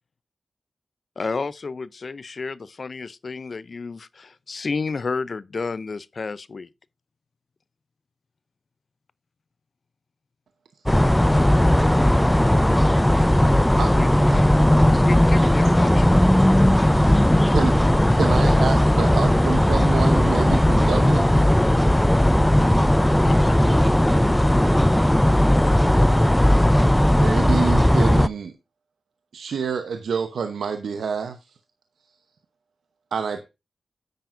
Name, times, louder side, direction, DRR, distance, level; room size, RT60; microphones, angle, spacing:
voice 1, 1.2-6.7 13.9-14.1 15.0-16.1 23.2-23.5 27.2-27.3, left 4 dB, 60° left, 0.5 m, -31 dB
sound 1, 10.9-28.3, left 1 dB, 10° left, 0.5 m, -17 dB
voice 2, 16.9-17.7 18.1-21.5 26.8-28.5 29.3-31.4 33.1-33.5, right 6 dB, 85° right, 0.8 m, -28 dB
voice 3, 23.1-24.2 24.5-25.3, right 1 dB, 20° right, 2.3 m, -35 dB
9.2 x 9.2 x 2.5 m
cardioid pair, 45°, 0 cm